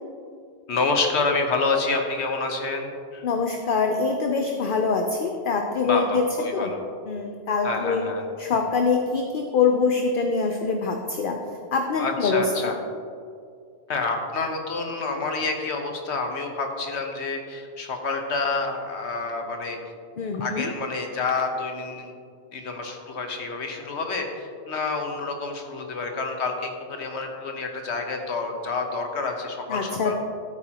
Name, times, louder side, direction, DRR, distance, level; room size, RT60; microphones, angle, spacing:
voice 1, 0.7-3.3 5.8-6.9 7.6-8.3 12.0-12.8 13.9-19.8 20.4-22.1 22.5-30.1, left 3 dB, 80° left, 4 dB, 1.3 m, -28 dB
voice 2, 3.2-6.2 6.5-6.7 7.1-8.0 8.4-11.4 11.7-12.7 20.2-20.7 29.7-30.1, left 4 dB, 55° left, 3 dB, 0.8 m, -24 dB
13.0 x 8.7 x 2.9 m, 2.4 s
omnidirectional pair, 1.1 m